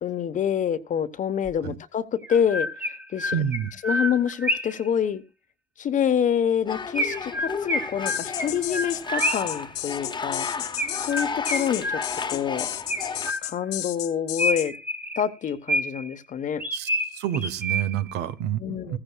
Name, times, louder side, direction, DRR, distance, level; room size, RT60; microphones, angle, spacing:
voice 1, 0.0-3.4 3.8-5.2 5.8-10.5 11.0-12.0 12.3-12.6 13.4-14.7 15.2-16.6 18.6-19.0, left 8 dB, 50° left, 1.1 m, -26 dB
Chirp tweet, 1.4-1.5 2.2-4.9 6.9-9.6 10.8-12.4 12.9-13.8 14.4-16.1 16.6-18.1, equal, 10° right, 1.3 m, -29 dB
voice 2, 3.3-3.7 16.7-19.0, right 10 dB, 90° right, 1.0 m, -28 dB
sound 1, 6.7-13.3, left 5 dB, 25° left, 1.1 m, -33 dB
sound 2, 8.1-14.7, left 13 dB, 85° left, 1.1 m, -33 dB
15.0 x 15.0 x 2.3 m
cardioid pair, 110°, 17 cm